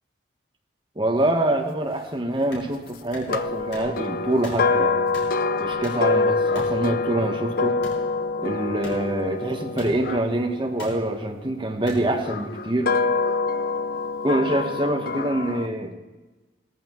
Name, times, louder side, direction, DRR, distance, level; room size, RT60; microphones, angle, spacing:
voice 1, 1.0-5.1 5.6-7.7 8.4-13.0 14.2-15.9, right 1 dB, 25° right, 2 dB, 1.2 m, -25 dB
sound 1, 2.5-2.7 3.1-3.3 3.7-3.9 4.4-4.6 5.1-5.3 5.8-6.1 6.5-6.7 7.8-8.0 8.8-9.0 9.8-9.9 10.8-10.9 11.9-12.0, left 1 dB, 75° left, 4.2 m, -37 dB
sound 2, 3.3-11.5 12.2-15.7, left 3 dB, 50° left, 0.4 m, -26 dB
17.0 x 14.0 x 3.1 m, 1.2 s
head